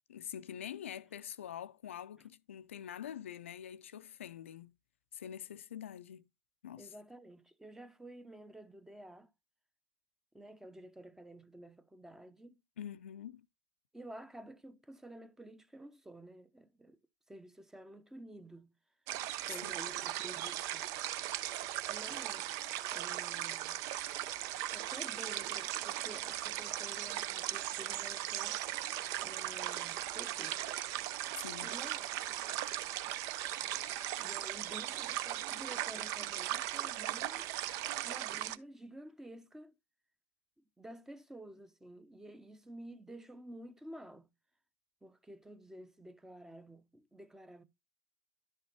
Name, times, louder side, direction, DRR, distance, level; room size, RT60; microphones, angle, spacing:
voice 1, 0.1-4.7 5.1-6.3 6.6-6.9 12.8-13.5 19.6-19.7 31.4-31.7, left 9 dB, 75° left, 0.5 m, -45 dB
voice 2, 6.8-9.3 10.3-12.6 13.9-17.0 17.3-18.8 19.4-21.0 21.4-22.5 22.9-23.9 24.7-30.6 31.6-32.1 34.2-37.5 38.0-39.7 40.6-44.3 45.0-47.6, right 1 dB, 5° right, 0.8 m, -51 dB
sound 1, 19.1-38.6, right 13 dB, 50° right, 0.6 m, -38 dB
11.5 x 6.5 x 3.0 m
hypercardioid pair, 90°, 7 cm